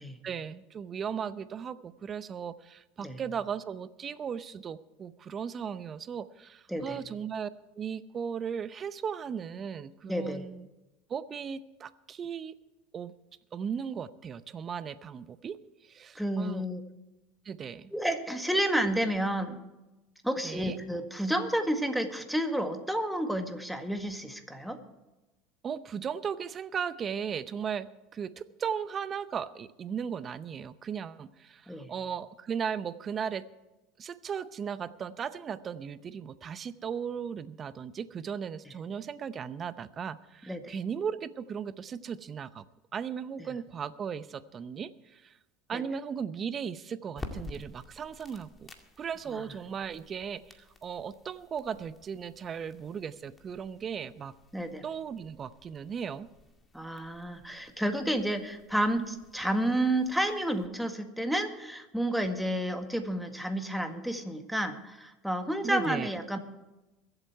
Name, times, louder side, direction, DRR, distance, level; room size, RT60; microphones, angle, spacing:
voice 1, 0.2-7.5 7.8-10.7 11.1-12.5 12.9-13.1 13.5-16.6 17.4-17.9 20.4-20.8 25.6-33.5 34.0-42.7 42.9-45.4 45.7-48.7 49.0-54.4 54.8-56.3 65.6-66.1, right 7 dB, 35° right, 15 dB, 0.7 m, -37 dB
voice 2, 10.1-10.5 16.1-16.8 17.9-19.6 20.2-24.8 31.7-31.9 40.5-40.8 43.4-43.5 45.7-45.8 49.3-49.4 54.5-54.8 56.7-66.4, right 1 dB, ahead, 6 dB, 1.8 m, -30 dB
sound 1, 47.1-60.7, left 3 dB, 20° left, 2.1 m, -51 dB
23.0 x 8.1 x 4.6 m, 1.0 s
hypercardioid pair, 85°, 0 cm